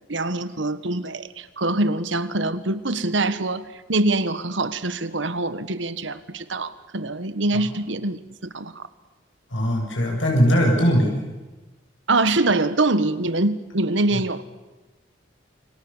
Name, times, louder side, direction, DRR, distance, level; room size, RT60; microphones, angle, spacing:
voice 1, 0.1-8.8 12.1-14.4, right 2 dB, 85° right, 1.4 m, -24 dB
voice 2, 9.5-11.2 14.1-14.2, equal, 90° left, 7.3 m, -20 dB
29.0 x 24.5 x 7.2 m
head